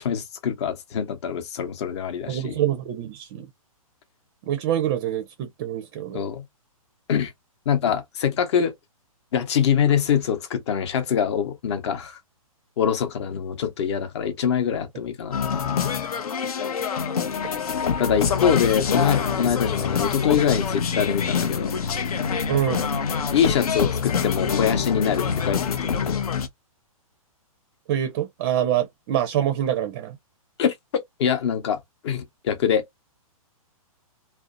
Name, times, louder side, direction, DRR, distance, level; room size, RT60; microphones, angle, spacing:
voice 1, 0.0-2.6 6.1-6.4 7.1-7.3 7.7-8.7 9.3-12.2 12.8-15.9 18.0-21.7 23.3-26.2 30.6-30.7 31.2-31.8 32.0-32.8, left 8 dB, 50° left, 0.8 m, -24 dB
voice 2, 2.3-3.5 4.4-6.2 22.5-22.9 27.9-30.2, right 11 dB, 35° right, 0.4 m, -25 dB
sound 1, 15.3-26.5, left 6 dB, 80° left, 0.6 m, -25 dB
2.5 x 2.1 x 2.5 m
hypercardioid pair, 140°, 19 cm